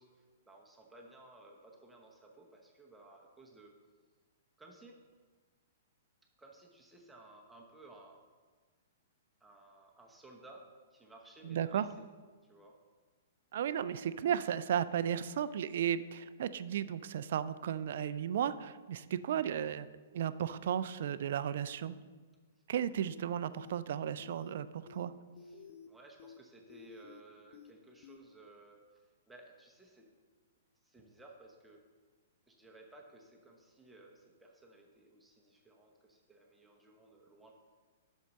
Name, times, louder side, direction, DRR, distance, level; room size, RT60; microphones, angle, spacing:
voice 1, 0.0-3.7 4.6-5.0 6.4-8.2 9.4-12.0 12.4-12.8 25.4-30.1 30.8-31.8 32.5-37.5, right 2 dB, 5° right, -1 dB, 1.0 m, -57 dB
voice 2, 11.4-11.9 13.5-19.9 20.1-22.0 22.7-25.1, right 9 dB, 60° right, 15 dB, 0.3 m, -34 dB
sound 1, 23.1-23.2 23.5-23.7 24.0-24.5 24.9-25.0 25.4-25.9 26.2-26.4 26.7-27.2 27.5-27.7 28.0-28.2, left 6 dB, 50° left, 0.5 m, -53 dB
8.2 x 6.3 x 4.1 m, 1.4 s
figure-of-eight pair, 115°, 0 cm